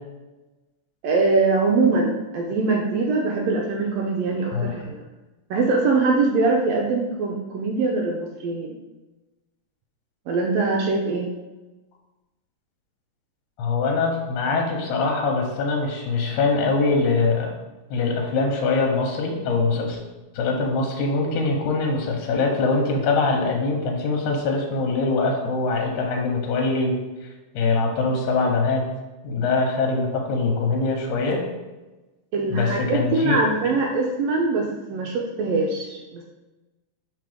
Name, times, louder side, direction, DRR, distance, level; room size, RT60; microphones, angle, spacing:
voice 1, 1.0-5.0 5.5-8.8 10.3-11.3 32.3-36.2, right 3 dB, 80° right, 1 dB, 1.6 m, -23 dB
voice 2, 13.6-17.5 17.9-20.0 20.3-27.0 27.6-28.9 29.2-31.4 32.5-33.4, left 3 dB, 85° left, 1 dB, 2.4 m, -23 dB
5.8 x 3.7 x 5.0 m, 1.1 s
omnidirectional pair, 3.5 m